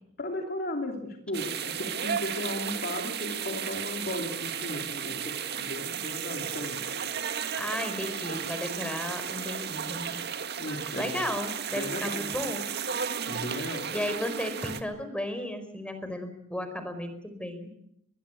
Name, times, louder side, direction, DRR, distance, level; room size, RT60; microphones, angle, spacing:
voice 1, 0.2-6.9 10.6-11.2 11.7-12.3 13.3-13.9, left 1 dB, 55° left, 4 dB, 2.9 m, -36 dB
sound 1, 1.3-14.8, right 7 dB, 55° right, 1.9 m, -34 dB
voice 2, 7.6-10.2 11.0-12.6 13.9-17.7, left 1 dB, 5° left, 8 dB, 4.7 m, -34 dB
23.5 x 21.5 x 8.4 m, 0.75 s
head